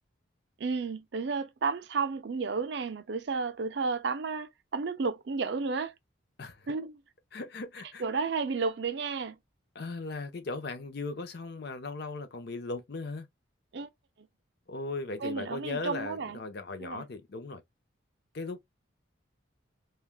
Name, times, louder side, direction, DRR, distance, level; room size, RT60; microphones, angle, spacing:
voice 1, 0.6-5.9 6.7-7.0 8.0-9.4 13.7-13.9 15.2-16.4 16.8-17.1, right 4 dB, 55° right, 0.4 m, -32 dB
voice 2, 7.3-8.0 9.7-13.3 14.7-17.6 18.3-18.6, left 3 dB, 50° left, 0.5 m, -38 dB
3.4 x 2.3 x 2.3 m
head